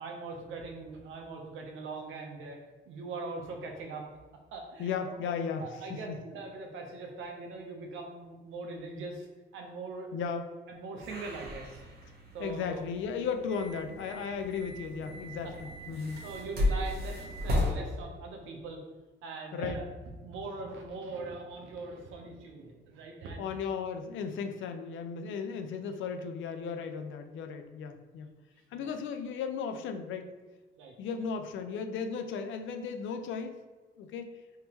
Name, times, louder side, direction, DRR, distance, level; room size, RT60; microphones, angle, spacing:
voice 1, 0.0-2.6 2.8-4.1 4.5-5.2 5.6-9.3 9.5-10.2 10.7-11.8 12.3-12.8 15.4-15.5 15.9-18.8 19.2-19.9 20.2-23.5 28.7-28.9 30.8-31.0, right 3 dB, 85° right, 2 dB, 0.7 m, -41 dB
voice 2, 4.8-6.2 10.1-10.5 12.4-16.2 19.5-19.8 23.4-28.3 28.7-30.4 31.0-33.6 34.0-34.4, left 6 dB, 75° left, 7 dB, 0.4 m, -35 dB
sound 1, 11.0-17.7, left 1 dB, 55° right, 1.0 m, -35 dB
3.5 x 2.9 x 2.9 m, 1.3 s
cardioid pair, 90°, 20 cm